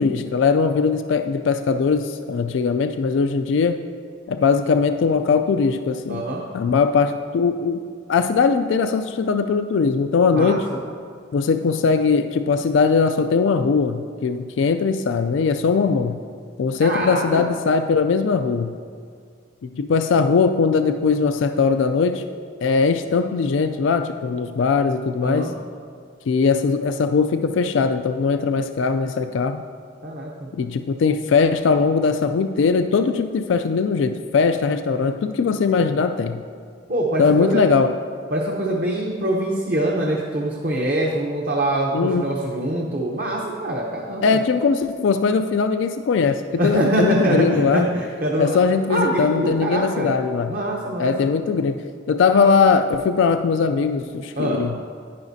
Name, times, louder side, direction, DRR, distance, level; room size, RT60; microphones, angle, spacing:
voice 1, 0.0-3.8 4.3-6.2 6.5-7.8 8.1-10.7 11.3-16.2 16.6-18.8 19.6-22.2 22.6-25.5 26.3-29.6 30.5-36.4 37.2-37.9 41.9-42.3 44.2-47.9 48.4-50.6 51.0-54.8, left 5 dB, 75° left, 8 dB, 0.3 m, -20 dB
voice 2, 6.1-6.4 10.3-10.8 16.8-17.4 25.2-25.5 30.0-30.5 36.9-37.6 38.3-44.4 46.6-48.6 48.9-50.1 50.5-51.3 54.4-54.6, right 1 dB, 45° right, -2 dB, 0.8 m, -24 dB
10.5 x 9.7 x 2.7 m, 2.1 s
head